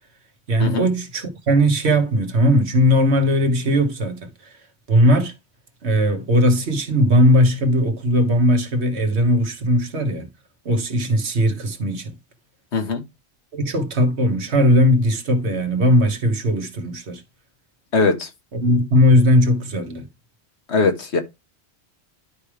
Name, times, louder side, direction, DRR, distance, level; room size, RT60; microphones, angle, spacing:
voice 1, 0.5-4.2 4.9-5.3 5.8-10.3 10.6-12.1 13.5-17.2 18.5-20.1, equal, 80° right, 1.6 m, -18 dB
voice 2, 12.7-13.0 17.9-18.3 20.7-21.2, left 4 dB, 90° left, 1.6 m, -20 dB
11.0 x 4.9 x 3.4 m
omnidirectional pair, 1.1 m